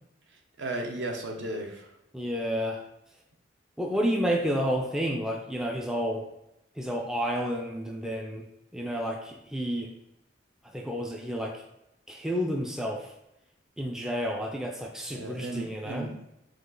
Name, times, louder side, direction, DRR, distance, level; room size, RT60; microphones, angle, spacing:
voice 1, 0.6-1.9 15.1-16.2, right 1 dB, 65° right, 2 dB, 0.7 m, -35 dB
voice 2, 2.1-2.8 3.8-6.2 6.8-8.5 8.7-9.9 10.7-11.6 12.1-13.1 13.8-16.1, equal, 5° right, 1 dB, 0.3 m, -30 dB
4.9 x 2.4 x 3.8 m, 0.86 s
head